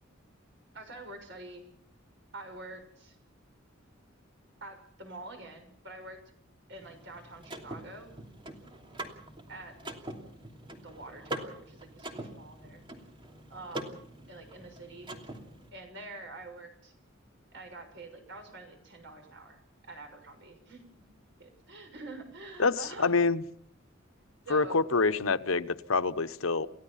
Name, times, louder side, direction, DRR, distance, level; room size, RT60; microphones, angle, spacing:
voice 1, 0.7-1.7 2.3-3.2 4.6-6.3 6.7-8.1 9.5-9.8 10.8-12.8 13.5-15.1 15.7-16.9 17.5-20.8 21.4-23.2 24.4-24.9, right 2 dB, 60° right, 5 dB, 6.6 m, -46 dB
Car / Mechanisms, 6.8-15.7, right 1 dB, 25° right, 2.9 m, -43 dB
voice 2, 22.6-23.4 24.5-26.7, left 4 dB, 90° left, 12 dB, 1.0 m, -26 dB
29.5 x 16.5 x 5.7 m, 0.64 s
head